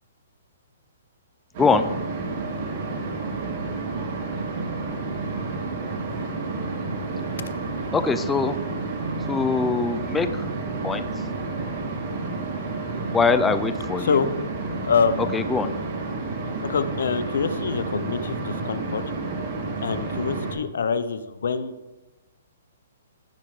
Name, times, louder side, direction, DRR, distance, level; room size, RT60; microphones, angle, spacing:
sound 1, 1.5-20.5, right 3 dB, 45° right, 1.9 m, -30 dB
voice 1, 7.9-8.6 9.3-10.5 10.8-11.0 13.1-14.2 15.3-15.7, left 4 dB, 10° left, 10 dB, 0.5 m, -22 dB
voice 2, 14.0-14.3 14.8-15.4 16.6-19.0 19.8-21.8, left 5 dB, 75° left, 12 dB, 0.8 m, -25 dB
14.0 x 5.7 x 3.3 m, 1.1 s
hypercardioid pair, 145°, 0 cm